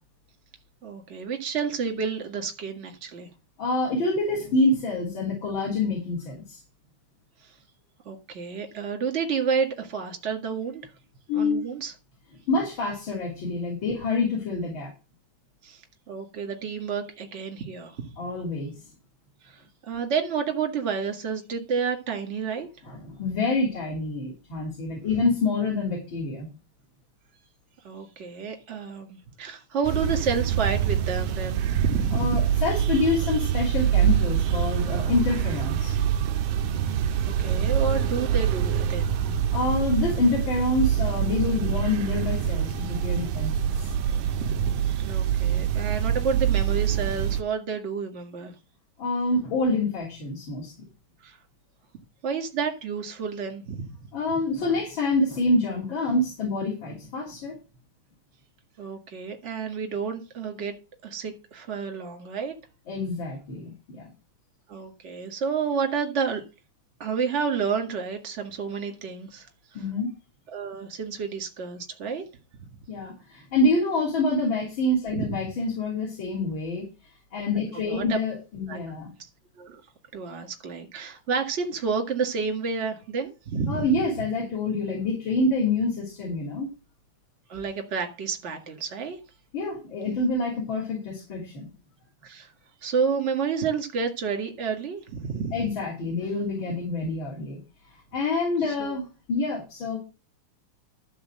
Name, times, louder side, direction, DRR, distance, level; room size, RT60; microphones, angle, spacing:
voice 1, 0.8-3.3 8.1-10.8 11.3-11.9 15.6-15.8 16.1-18.0 19.4-22.7 27.8-32.4 37.3-39.3 44.3-44.8 45.0-48.5 51.2-51.4 52.2-53.9 58.8-60.7 61.0-62.5 64.7-66.4 67.0-69.5 70.5-72.2 75.1-75.3 77.7-78.2 78.7-78.8 79.6-79.8 80.1-83.9 87.5-89.2 92.2-92.5 92.8-95.7 98.6-99.0, right 6 dB, 30° right, 1.7 m, -30 dB
voice 2, 3.6-6.6 11.3-11.6 12.5-14.9 18.2-18.7 22.8-26.5 32.1-36.0 39.5-43.9 49.0-50.7 54.1-57.6 62.9-64.1 69.7-70.1 72.9-76.8 77.3-79.1 83.7-86.7 89.5-91.7 95.5-97.6 98.1-100.0, left 2 dB, 40° left, 3.8 m, -27 dB
sound 1, 29.8-47.4, right 9 dB, 85° right, 1.3 m, -25 dB
12.5 x 4.3 x 7.7 m
omnidirectional pair, 3.5 m